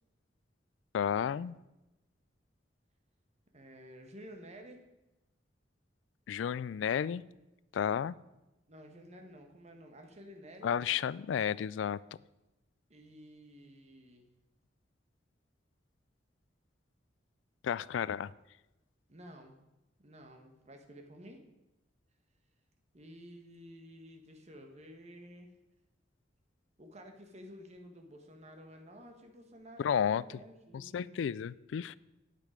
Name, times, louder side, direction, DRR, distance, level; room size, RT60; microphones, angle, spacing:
voice 1, 0.9-1.5 6.3-7.2 7.7-8.2 10.6-12.0 17.6-18.3 29.8-30.2 30.7-32.0, left 8 dB, 80° left, 20 dB, 0.3 m, -32 dB
voice 2, 3.5-4.8 8.7-10.7 12.9-14.3 19.1-19.5 20.0-21.4 22.9-25.5 26.8-31.1, equal, 40° right, 4 dB, 1.4 m, -52 dB
9.9 x 8.5 x 5.0 m, 0.99 s
head